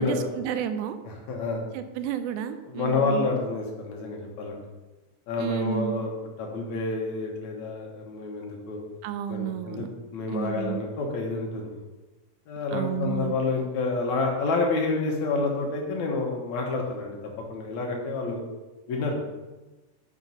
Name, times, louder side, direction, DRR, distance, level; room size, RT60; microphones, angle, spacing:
voice 1, 0.0-1.0 1.7-3.3 5.4-6.0 9.0-9.9 10.3-10.9 12.7-13.4, right 9 dB, 85° right, 10 dB, 2.0 m, -31 dB
voice 2, 1.1-1.6 2.7-4.6 5.3-8.8 9.3-9.8 10.1-11.8 12.5-17.2 17.5-18.4 18.9-19.2, left 3 dB, 70° left, 0 dB, 2.3 m, -29 dB
6.3 x 5.2 x 5.5 m, 1.1 s
omnidirectional pair, 3.6 m